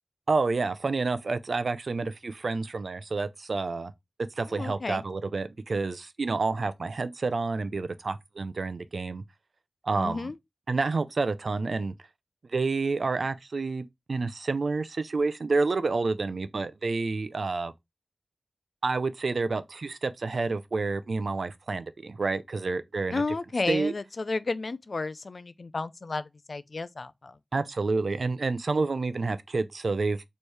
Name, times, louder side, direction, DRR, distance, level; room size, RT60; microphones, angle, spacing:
voice 1, 0.3-3.9 4.4-9.2 9.8-10.3 10.7-11.9 12.5-17.7 18.8-23.2 23.7-23.9 27.5-30.3, right 3 dB, 70° right, 0.4 m, -29 dB
voice 2, 4.5-5.0 10.0-10.4 23.1-27.4, left 3 dB, 55° left, 0.4 m, -32 dB
4.4 x 3.1 x 3.3 m
wide cardioid pair, 95°, 0 cm